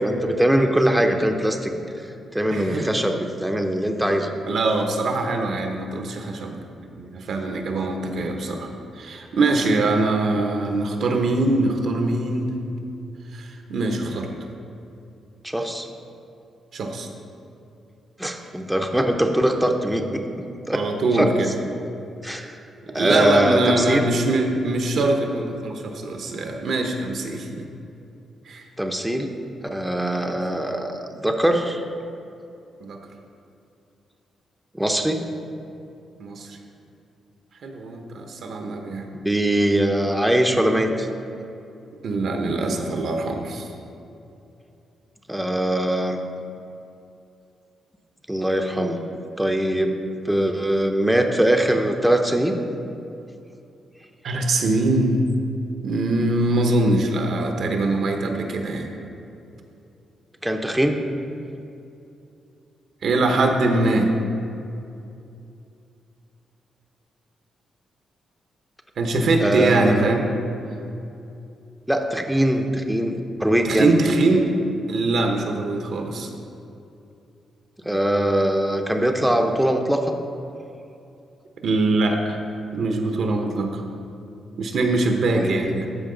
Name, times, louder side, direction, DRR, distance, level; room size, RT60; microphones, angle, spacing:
voice 1, 0.0-1.7 2.0-2.1 2.3-4.3 15.4-15.9 18.2-20.2 20.7-20.8 21.1-21.3 22.2-22.6 22.9-24.1 28.8-29.3 29.7-31.8 34.7-35.2 39.2-41.1 45.3-46.2 48.3-49.0 49.4-50.0 50.2-52.6 60.4-61.0 69.4-70.1 71.9-73.9 77.8-80.1 85.3-85.7, right 1 dB, 5° right, 3 dB, 0.6 m, -22 dB
voice 2, 2.5-2.9 4.5-12.5 13.3-14.3 16.7-17.1 20.1-20.2 20.7-21.5 22.8-27.7 28.4-28.7 30.5-30.7 32.8-33.0 36.2-36.6 37.6-39.1 42.0-43.7 54.2-55.2 55.8-58.9 63.0-64.1 69.0-70.3 73.6-74.5 74.9-76.3 81.6-82.4 82.7-83.8 84.6-85.9, right 2 dB, 65° right, 4 dB, 0.9 m, -23 dB
13.0 x 4.6 x 3.9 m, 2.7 s
cardioid pair, 80°, 0 cm